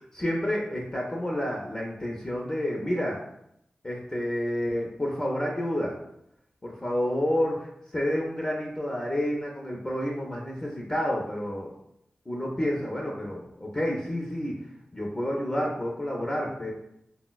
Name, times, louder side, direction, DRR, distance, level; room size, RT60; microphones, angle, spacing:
voice 1, 0.1-3.2 3.8-6.0 6.6-7.7 7.9-11.7 12.3-14.7 14.9-16.7, equal, 25° left, -2 dB, 0.4 m, -29 dB
3.8 x 2.0 x 2.2 m, 0.78 s
wide cardioid pair, 75°, 3 cm